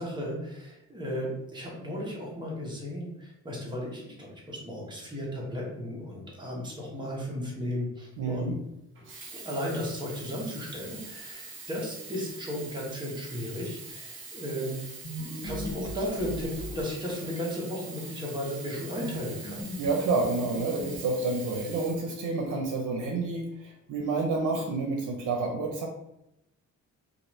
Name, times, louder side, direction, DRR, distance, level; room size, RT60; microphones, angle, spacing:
voice 1, 0.0-8.5 9.3-19.6, equal, 15° right, -4 dB, 1.0 m, -35 dB
voice 2, 8.2-8.5 19.8-25.9, right 3 dB, 90° right, 1 dB, 0.6 m, -29 dB
Sink (filling or washing), 9.0-22.7 23.5-23.6, right 4 dB, 40° right, 0.8 m, -44 dB
sound 1, 15.0-17.6 19.0-21.4, equal, 85° left, 1.4 m, -39 dB
2.9 x 2.5 x 3.0 m, 0.84 s
cardioid pair, 125°, 31 cm